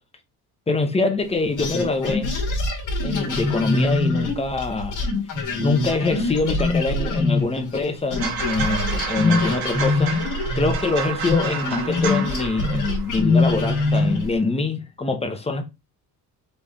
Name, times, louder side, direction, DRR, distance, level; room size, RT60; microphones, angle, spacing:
voice 1, 0.7-2.4 3.0-5.0 5.6-10.1 10.6-15.7, left 3 dB, 15° left, 0.8 m, -24 dB
sound 1, 1.6-7.9 8.1-14.3, left 3 dB, 50° left, 1.5 m, -23 dB
sound 2, 8.2-13.5 13.8-14.1, right 6 dB, 70° right, 1.3 m, -30 dB
4.1 x 3.3 x 3.5 m
cardioid pair, 130°, 37 cm